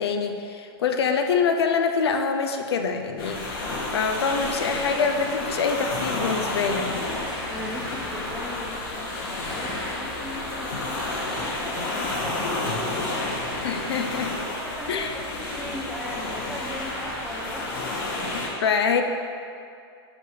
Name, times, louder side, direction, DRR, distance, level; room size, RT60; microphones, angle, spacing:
voice 1, 0.0-3.6 3.9-6.9 13.6-14.3 14.9-15.1 18.3-19.0, left 5 dB, 80° left, 5 dB, 0.8 m, -25 dB
sound 1, 3.2-18.5, left 2 dB, 55° left, 1.9 m, -30 dB
voice 2, 7.5-11.1 11.4-13.3 14.3-17.9, equal, ahead, -6 dB, 0.5 m, -38 dB
5.4 x 5.0 x 6.5 m, 2.5 s
supercardioid pair, 160°, 13 cm